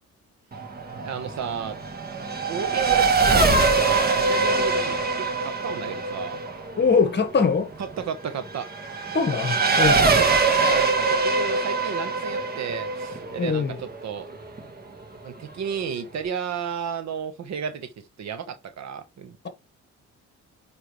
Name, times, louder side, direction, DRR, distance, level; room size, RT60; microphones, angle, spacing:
Race car auto racing / Accelerating revving vroom, 0.5-14.6, right 3 dB, 30° right, 1.6 m, -23 dB
voice 1, 1.0-1.8 2.5-6.4 7.8-8.7 10.0-14.3 15.2-19.5, right 7 dB, 65° right, 1.2 m, -33 dB
voice 2, 6.8-7.7 9.1-10.1 13.4-13.8, left 5 dB, 35° left, 1.5 m, -22 dB
9.3 x 3.3 x 3.2 m
cardioid pair, 90°, 30 cm